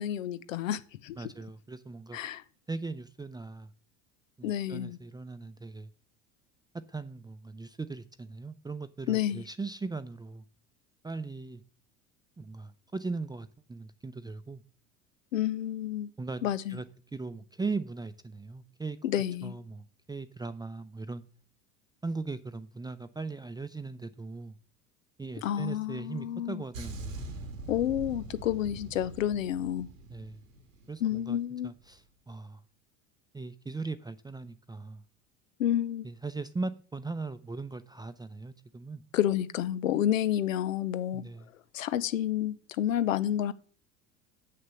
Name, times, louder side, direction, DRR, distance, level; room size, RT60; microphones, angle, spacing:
voice 1, 0.0-1.2 2.1-2.4 4.4-5.0 9.1-9.4 15.3-16.1 16.4-16.8 19.0-19.6 25.4-26.6 27.7-29.9 31.0-31.7 35.6-36.1 39.1-41.2 41.7-43.5, left 11 dB, 80° left, 0.9 m, -30 dB
voice 2, 1.2-2.2 2.7-3.7 4.4-5.9 6.9-10.4 11.0-11.6 12.4-14.6 16.2-16.4 16.7-16.8 17.1-21.2 22.0-24.6 25.2-27.3 30.1-30.4 30.9-32.6 33.3-35.0 36.0-39.0 41.1-41.5, right 3 dB, 10° right, 0.7 m, -39 dB
sound 1, 26.7-31.3 31.6-31.8, right 2 dB, 90° right, 1.9 m, -43 dB
7.8 x 6.5 x 7.0 m
hypercardioid pair, 75°, 38 cm